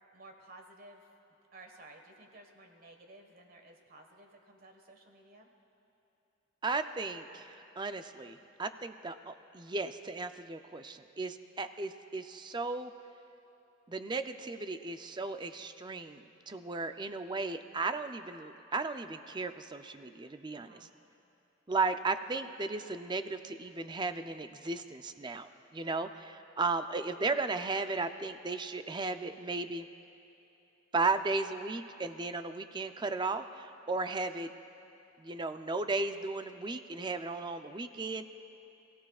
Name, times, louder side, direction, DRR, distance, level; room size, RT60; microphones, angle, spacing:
voice 1, 0.1-1.1 1.5-5.5 20.5-20.9 25.8-26.1, right 2 dB, 50° right, 3 dB, 1.5 m, -55 dB
voice 2, 6.6-12.9 13.9-20.9 21.7-29.9 30.9-34.5 35.2-38.3, right 3 dB, 25° right, 9 dB, 0.5 m, -35 dB
27.5 x 16.5 x 2.4 m, 2.9 s
head